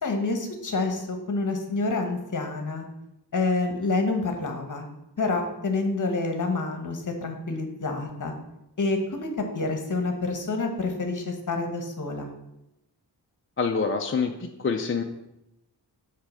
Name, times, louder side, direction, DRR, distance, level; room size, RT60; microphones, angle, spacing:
voice 1, 0.0-2.9 3.3-4.9 5.2-8.3 8.8-12.3, left 3 dB, 45° left, 4 dB, 1.1 m, -28 dB
voice 2, 13.6-15.0, left 5 dB, 30° left, 3 dB, 0.4 m, -26 dB
8.5 x 3.3 x 6.2 m, 0.88 s
wide cardioid pair, 165°, 42 cm